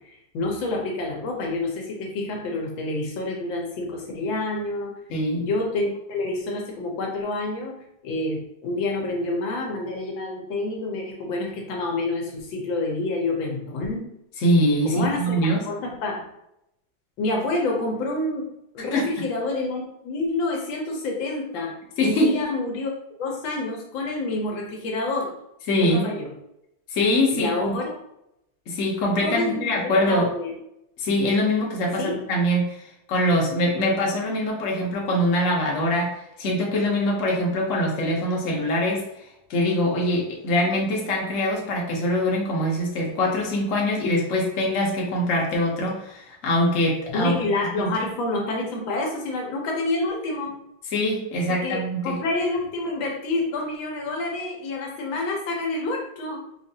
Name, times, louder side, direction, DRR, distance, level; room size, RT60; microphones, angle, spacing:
voice 1, 0.0-4.9 5.4-7.8 8.0-14.1 14.8-15.4 15.7-16.2 17.2-18.5 18.7-21.7 22.0-22.9 23.2-25.3 25.7-26.3 27.3-27.9 29.2-29.6 30.1-30.5 32.0-32.2 47.1-50.5 51.5-56.4, left 2 dB, 80° left, 0 dB, 1.5 m, -28 dB
voice 2, 5.1-5.4 14.4-15.6 18.9-19.1 22.0-22.3 25.7-26.1 26.9-27.8 28.7-30.3 31.0-32.8 33.1-36.1 36.4-39.0 39.5-47.4 47.7-47.9 50.9-52.2, left 1 dB, 50° left, -2 dB, 1.0 m, -23 dB
4.3 x 2.4 x 2.7 m, 0.81 s
omnidirectional pair, 2.1 m